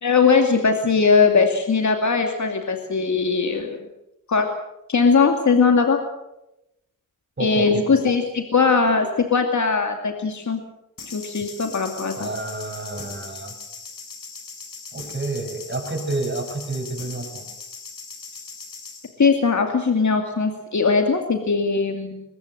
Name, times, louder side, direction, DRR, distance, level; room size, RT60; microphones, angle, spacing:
voice 1, 0.0-3.8 4.3-4.5 4.9-6.0 7.4-10.6 11.1-12.3 19.2-22.2, left 5 dB, 60° left, 4 dB, 2.4 m, -20 dB
voice 2, 7.4-8.1 12.2-13.5 14.9-17.5, right 2 dB, 35° right, 4 dB, 6.5 m, -29 dB
sound 1, 11.0-19.1, left 5 dB, 80° left, 4.7 m, -39 dB
23.0 x 20.0 x 7.8 m, 0.89 s
wide cardioid pair, 75°, 33 cm